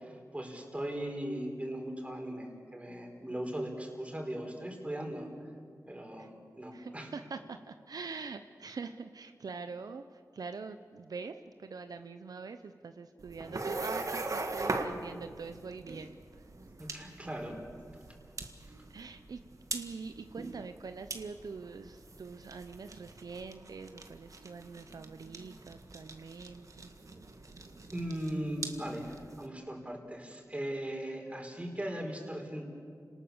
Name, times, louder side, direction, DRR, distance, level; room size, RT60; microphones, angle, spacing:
voice 1, 0.0-5.3 5.9-6.3 6.6-7.1 13.4-13.6 16.8-17.6 27.9-32.7, right 1 dB, 20° right, 2 dB, 4.6 m, -38 dB
voice 2, 6.7-16.4 18.9-19.4 19.7-26.9 27.4-27.5, right 4 dB, 80° right, 9 dB, 0.7 m, -44 dB
sound 1, 13.2-29.5, right 3 dB, 55° right, 1.7 m, -41 dB
28.5 x 19.5 x 7.2 m, 2.3 s
wide cardioid pair, 60°, 6 cm